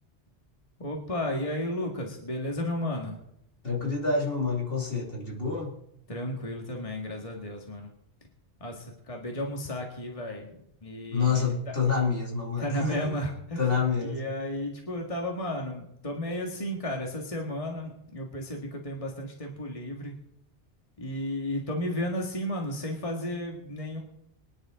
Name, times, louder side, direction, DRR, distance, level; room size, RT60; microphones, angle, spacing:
voice 1, 0.8-3.2 6.1-7.9 8.6-11.8 12.6-13.6 14.0-20.2 21.0-24.0, left 1 dB, 30° left, 1 dB, 2.0 m, -33 dB
voice 2, 3.6-5.7 11.1-13.1 13.6-14.3, left 5 dB, 55° left, -1 dB, 2.8 m, -27 dB
24.5 x 10.5 x 3.8 m, 0.76 s
omnidirectional pair, 1.2 m